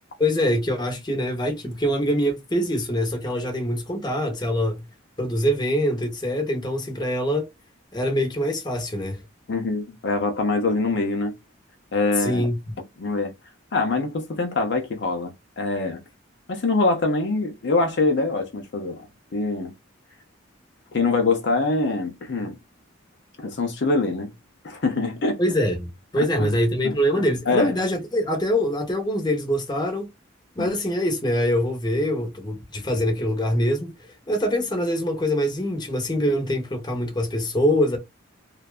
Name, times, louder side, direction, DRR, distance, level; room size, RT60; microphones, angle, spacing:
voice 1, 0.2-4.9 5.2-7.5 7.9-9.2 12.2-12.8 25.4-30.1 30.6-38.0, equal, 20° left, 0.8 m, -24 dB
voice 2, 9.5-11.3 11.9-12.5 13.0-13.3 13.7-15.3 15.6-16.0 16.5-19.1 19.3-19.7 20.9-22.6 23.4-24.3 24.6-25.4 26.2-26.5 26.8-27.8 30.6-30.7, left 3 dB, 55° left, 0.5 m, -24 dB
2.5 x 2.2 x 2.3 m
head